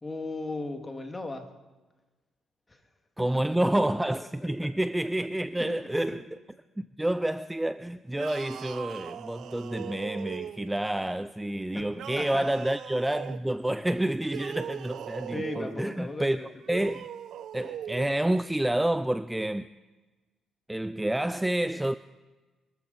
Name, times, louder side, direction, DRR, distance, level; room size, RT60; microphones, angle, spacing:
voice 1, 0.0-1.5 2.7-2.8 4.6-4.7 5.6-5.8 6.1-6.2 11.7-11.8 12.1-12.6 15.3-16.5, left 2 dB, 20° left, 1.9 m, -36 dB
voice 2, 3.2-6.2 6.8-16.4 16.7-17.0 17.5-19.7 20.7-22.0, right 1 dB, 10° right, 0.4 m, -29 dB
sound 1, 8.1-10.9 11.9-13.4 14.2-15.7 16.6-18.1, right 10 dB, 70° right, 0.5 m, -40 dB
23.5 x 13.5 x 4.0 m
cardioid pair, 90°, 0 cm